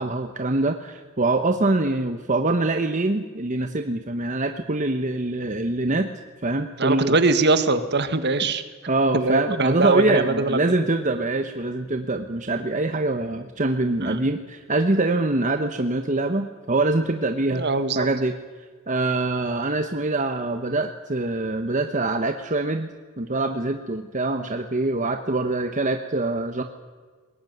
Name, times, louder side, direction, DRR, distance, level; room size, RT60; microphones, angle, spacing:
voice 1, 0.0-6.1 6.4-7.2 8.9-17.7 17.9-18.4 18.9-22.9 23.2-26.6, right 2 dB, 35° right, 6 dB, 1.1 m, -24 dB
voice 2, 6.8-8.6 9.1-10.6 14.0-14.2 17.5-18.1, right 3 dB, 50° right, 11 dB, 1.6 m, -22 dB
21.5 x 18.0 x 9.4 m, 1.5 s
head